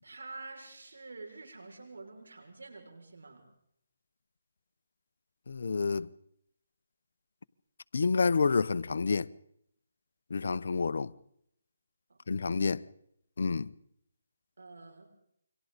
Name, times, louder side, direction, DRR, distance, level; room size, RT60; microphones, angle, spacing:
voice 1, 0.0-3.4 12.1-12.2 14.6-15.1, right 3 dB, 80° right, 5.9 m, -47 dB
voice 2, 5.5-6.1 7.9-9.3 10.3-11.1 12.3-12.8 13.4-13.7, left 4 dB, 65° left, 0.8 m, -28 dB
28.5 x 24.0 x 4.1 m
hypercardioid pair, 155°, 0 cm